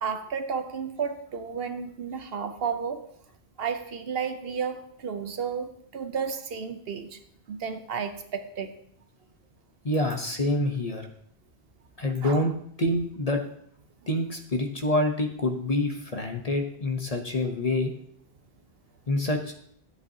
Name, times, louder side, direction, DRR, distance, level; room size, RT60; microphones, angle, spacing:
voice 1, 0.0-3.0 3.6-7.2 7.5-8.7 12.2-12.4, right 6 dB, 65° right, 9 dB, 0.9 m, -32 dB
voice 2, 9.8-11.1 12.0-13.4 14.1-17.9 19.1-19.5, left 1 dB, 35° left, 4 dB, 0.9 m, -27 dB
12.0 x 8.1 x 2.8 m, 0.69 s
omnidirectional pair, 1.1 m